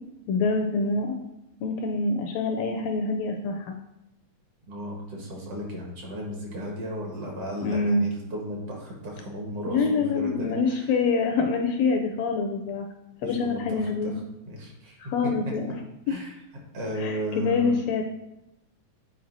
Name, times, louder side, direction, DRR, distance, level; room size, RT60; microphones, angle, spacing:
voice 1, 0.3-1.1 1.6-3.7 7.6-8.0 9.7-12.9 13.2-14.2 15.0-15.6 17.0-18.0, left 4 dB, 80° left, 4 dB, 1.6 m, -25 dB
voice 2, 4.7-10.9 13.2-14.1 14.5-15.3 16.1-16.4 16.7-17.7, equal, 60° right, -1 dB, 2.2 m, -35 dB
9.1 x 4.5 x 2.6 m, 0.88 s
omnidirectional pair, 3.3 m